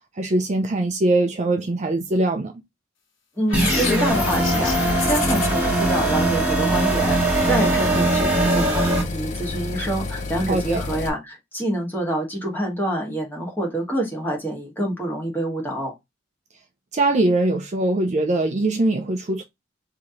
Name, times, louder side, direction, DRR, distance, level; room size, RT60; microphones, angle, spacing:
voice 1, 0.2-2.5 10.5-10.8 16.9-19.4, right 2 dB, 35° right, 0.5 m, -22 dB
voice 2, 3.4-15.9, right 1 dB, 10° left, 1.3 m, -26 dB
sound 1, 3.5-5.7, left 5 dB, 80° left, 1.1 m, -30 dB
sound 2, 3.5-9.0, right 2 dB, 10° right, 1.2 m, -21 dB
sound 3, 4.1-11.1, left 3 dB, 40° left, 0.5 m, -30 dB
3.1 x 2.8 x 3.7 m
head